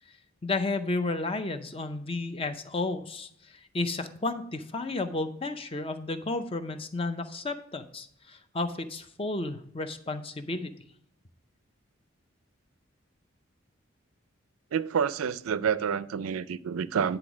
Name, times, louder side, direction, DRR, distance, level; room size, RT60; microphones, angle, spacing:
voice 1, 0.4-10.7, left 2 dB, 25° left, 0.5 m, -32 dB
voice 2, 14.7-17.2, right 7 dB, 90° right, 0.4 m, -28 dB
9.7 x 3.9 x 6.1 m
head